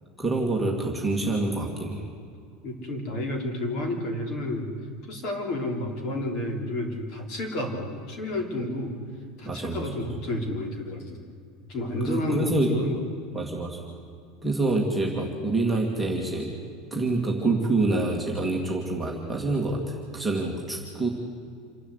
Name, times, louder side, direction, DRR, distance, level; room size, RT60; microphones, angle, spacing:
voice 1, 0.2-2.0 9.4-9.9 12.0-12.9 13.3-13.8 14.4-16.5 16.9-21.1, right 2 dB, 5° right, -3 dB, 2.0 m, -26 dB
voice 2, 2.6-4.7 5.1-8.9 9.4-11.2 11.7-13.0, left 1 dB, 40° left, 3 dB, 3.4 m, -30 dB
27.5 x 12.0 x 8.1 m, 2.3 s
cardioid pair, 180°, 0 cm